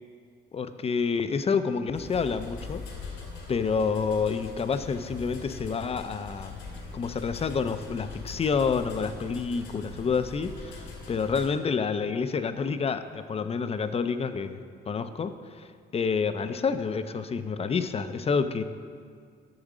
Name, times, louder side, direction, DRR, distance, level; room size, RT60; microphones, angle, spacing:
voice 1, 0.5-2.8 3.5-6.6 6.9-18.6, left 5 dB, 30° left, 11 dB, 0.5 m, -28 dB
sound 1, 1.9-11.5, left 3 dB, 90° left, 2.1 m, -41 dB
8.8 x 6.4 x 4.9 m, 2.1 s
cardioid pair, 90°, 20 cm